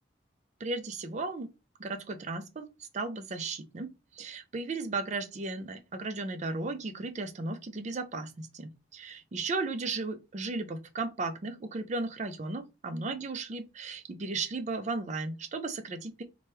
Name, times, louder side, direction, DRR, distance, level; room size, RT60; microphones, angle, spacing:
voice 1, 0.6-1.5 1.8-16.2, right 3 dB, 40° right, 0.5 m, -35 dB
2.9 x 2.2 x 3.1 m
head